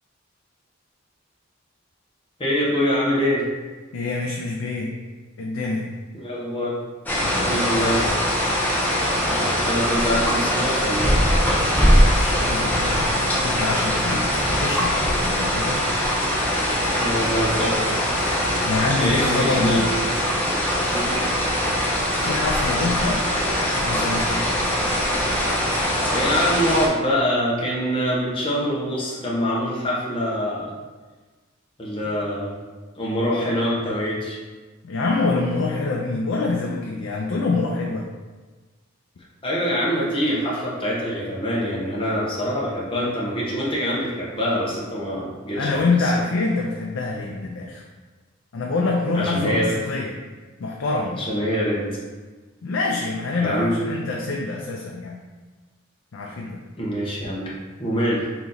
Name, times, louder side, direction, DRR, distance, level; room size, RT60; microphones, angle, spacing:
voice 1, 2.4-3.5 6.1-6.8 7.4-8.0 9.6-11.2 16.9-18.1 19.0-20.0 20.9-21.2 26.0-30.7 31.8-32.6 33.0-34.4 39.4-46.1 49.1-49.7 51.1-51.9 53.4-53.8 56.8-57.4 57.8-58.3, equal, 25° left, -5 dB, 1.0 m, -24 dB
voice 2, 3.9-4.9 5.4-5.9 7.2-8.1 12.1-14.9 15.2-15.8 18.6-19.9 22.1-23.2 23.8-24.4 34.8-38.1 45.5-47.8 48.5-50.1 50.6-51.2 52.6-55.2 56.1-56.6, left 3 dB, 75° left, -1 dB, 0.5 m, -25 dB
sound 1, 7.1-26.9, equal, 10° left, 0.6 m, -22 dB
3.9 x 3.0 x 3.9 m, 1.3 s
head